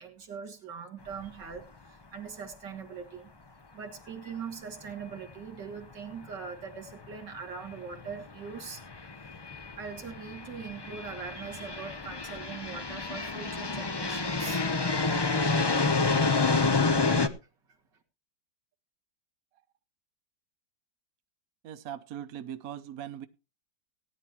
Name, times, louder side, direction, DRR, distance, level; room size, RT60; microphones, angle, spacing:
voice 1, 0.0-3.3 3.7-8.8 9.7-14.6, right 6 dB, 85° right, 3 dB, 2.8 m, -41 dB
sound 1, 1.1-1.3 1.6-1.7 5.7-5.8 6.9-7.1 7.7-17.3, left 3 dB, 40° left, 0.3 m, -29 dB
voice 2, 21.6-23.3, right 10 dB, 60° right, 12 dB, 1.2 m, -40 dB
18.5 x 10.5 x 3.0 m, 0.30 s
omnidirectional pair, 1.8 m